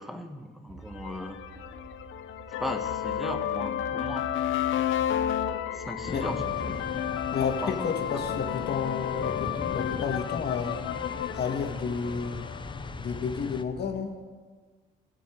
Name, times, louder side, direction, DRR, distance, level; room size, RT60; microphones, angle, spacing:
voice 1, 0.0-1.4 2.6-4.4 5.7-6.4 6.7-6.9 7.6-7.8, equal, ahead, 7 dB, 1.3 m, -37 dB
sound 1, 0.7-14.0, right 6 dB, 60° right, 3.5 m, -47 dB
sound 2, 1.0-12.7, left 11 dB, 80° left, 0.8 m, -32 dB
sound 3, 6.1-13.6, left 4 dB, 25° left, 0.6 m, -39 dB
voice 2, 7.3-10.8 11.3-12.4 13.0-14.1, left 6 dB, 55° left, 4 dB, 1.7 m, -31 dB
21.5 x 7.3 x 4.5 m, 1.5 s
cardioid pair, 90°, 20 cm